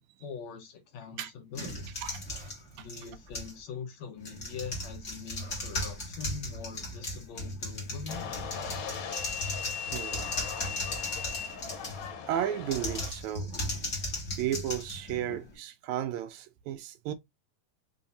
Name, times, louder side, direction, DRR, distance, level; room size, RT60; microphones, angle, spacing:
voice 1, 0.0-1.9 2.8-8.2, left 6 dB, 65° left, 2.2 m, -43 dB
sound 1, 1.5-3.6 4.2-12.1 12.6-15.5, left 1 dB, 35° left, 1.2 m, -37 dB
voice 2, 2.0-2.9 9.9-10.3 10.7-10.8 12.3-13.5 14.4-17.1, right 11 dB, 80° right, 1.8 m, -34 dB
sound 2, 8.1-13.1, left 7 dB, 90° left, 2.5 m, -38 dB
5.6 x 2.8 x 2.7 m
omnidirectional pair, 3.6 m